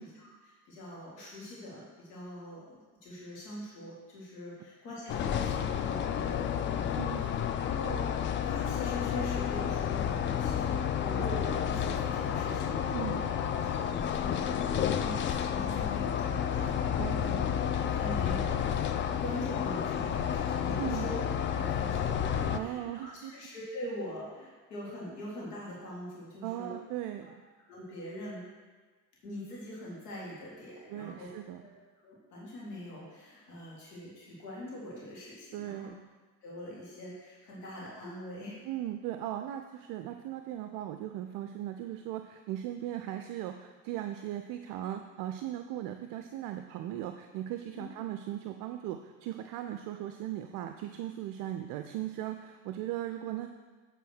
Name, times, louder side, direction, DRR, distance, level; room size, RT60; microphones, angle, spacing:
voice 1, 0.0-8.1 8.4-15.2 15.5-16.9 17.2-18.6 19.2-21.2 21.5-26.8 27.2-27.3 27.7-28.4 29.2-31.3 31.5-31.7 32.0-35.9 36.4-38.6 47.7-47.9, left 1 dB, 70° left, -5 dB, 2.2 m, -43 dB
sound 1, 5.1-22.6, left 8 dB, 25° left, 0.4 m, -31 dB
voice 2, 12.9-13.3 17.0-17.6 20.8-21.1 22.5-23.3 26.4-27.3 30.9-31.6 35.5-35.9 38.6-53.5, right 12 dB, 45° right, 7 dB, 0.5 m, -38 dB
8.3 x 3.6 x 6.2 m, 1.4 s
figure-of-eight pair, 55°, 48 cm